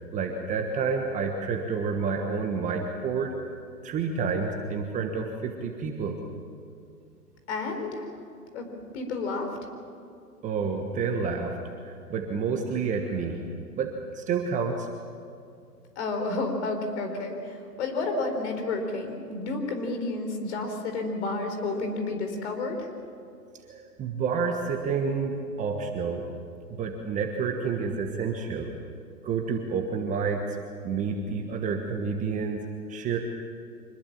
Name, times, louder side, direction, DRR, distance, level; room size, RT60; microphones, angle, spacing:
voice 1, 0.1-3.3 3.8-6.2 10.4-13.4 13.8-14.9 23.7-26.3 26.7-28.7 29.2-30.6 30.8-33.2, right 5 dB, 15° right, 3 dB, 1.3 m, -29 dB
voice 2, 7.5-8.1 8.5-8.6 8.9-9.6 16.0-22.9, left 3 dB, 45° left, 5 dB, 4.4 m, -31 dB
25.5 x 20.5 x 7.3 m, 2.5 s
figure-of-eight pair, 130°, 48 cm